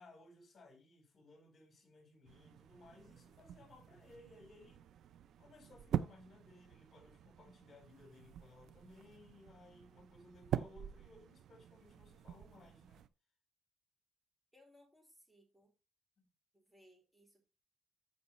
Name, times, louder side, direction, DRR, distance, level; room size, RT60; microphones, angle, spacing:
voice 1, 0.0-4.9 5.4-13.0 16.2-16.3, left 2 dB, 40° left, 4.0 m, -61 dB
sound 1, 2.3-13.1, right 10 dB, 70° right, 0.6 m, -45 dB
voice 2, 14.5-15.7 16.5-17.4, left 1 dB, ahead, 4.5 m, -65 dB
14.0 x 5.2 x 3.1 m
cardioid pair, 90°, 0 cm